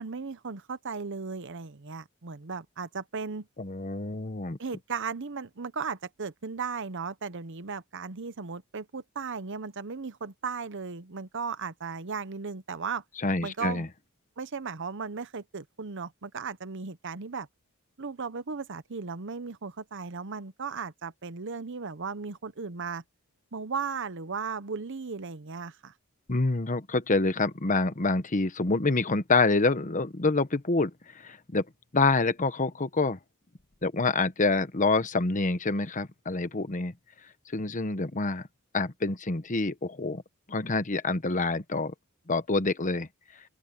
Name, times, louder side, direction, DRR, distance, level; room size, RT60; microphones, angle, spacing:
voice 1, 0.0-3.5 4.6-13.0 13.4-13.9 14.4-17.5 18.0-23.0 23.5-25.9, right 5 dB, 60° right, 0.9 m, -36 dB
voice 2, 3.6-4.6 13.2-13.9 26.3-31.6 31.9-33.2 33.8-36.9 37.5-38.5 38.7-40.2 40.5-41.9 42.3-43.1, left 3 dB, 35° left, 1.1 m, -27 dB
open air
head